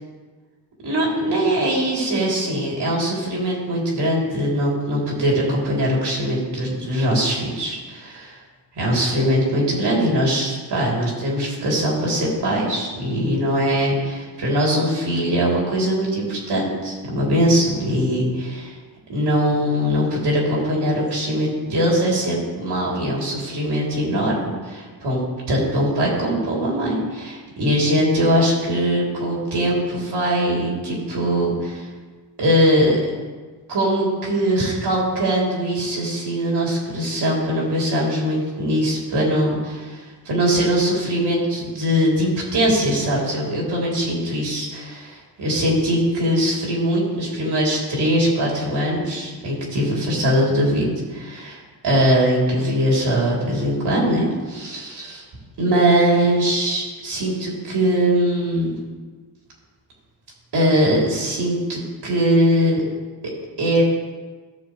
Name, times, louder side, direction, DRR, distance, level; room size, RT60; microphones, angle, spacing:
voice 1, 0.8-8.4 8.7-18.7 19.1-25.2 25.5-31.9 32.4-33.0 33.7-55.2 55.6-58.7 60.5-62.8 63.6-63.8, equal, 65° right, -4 dB, 3.3 m, -21 dB
14.5 x 6.7 x 3.2 m, 1.4 s
cardioid pair, 90°, 43 cm